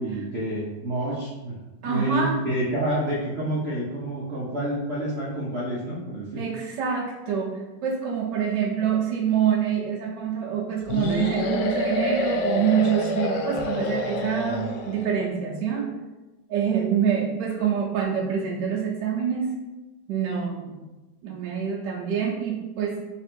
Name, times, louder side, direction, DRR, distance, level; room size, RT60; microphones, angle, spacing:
voice 1, 0.0-6.4, right 1 dB, 60° right, -6 dB, 0.7 m, -28 dB
voice 2, 1.8-2.4 6.3-15.9 16.5-19.5 20.1-20.8 21.2-23.0, right 8 dB, 75° right, -3 dB, 1.2 m, -26 dB
sound 1, 10.9-15.1, left 2 dB, 75° left, 1.1 m, -27 dB
4.2 x 2.4 x 4.3 m, 1.1 s
omnidirectional pair, 2.0 m